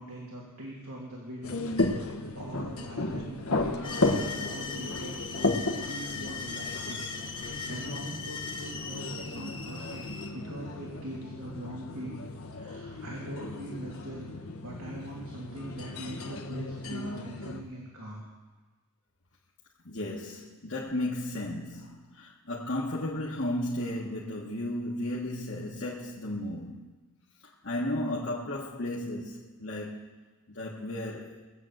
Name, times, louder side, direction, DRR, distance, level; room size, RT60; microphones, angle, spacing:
voice 1, 0.0-10.0 10.3-12.3 12.5-14.3 14.6-18.2, right 1 dB, 90° right, -4 dB, 3.0 m, -42 dB
Small Restaurant atmosphere, 1.4-17.6, left 2 dB, 80° left, 1.3 m, -34 dB
sound 1, 3.8-10.3, left 5 dB, 25° left, 1.2 m, -39 dB
voice 2, 19.8-26.9 27.6-30.1 30.5-31.4, left 1 dB, 60° left, -5 dB, 1.4 m, -34 dB
20.0 x 7.7 x 7.8 m, 1.3 s
head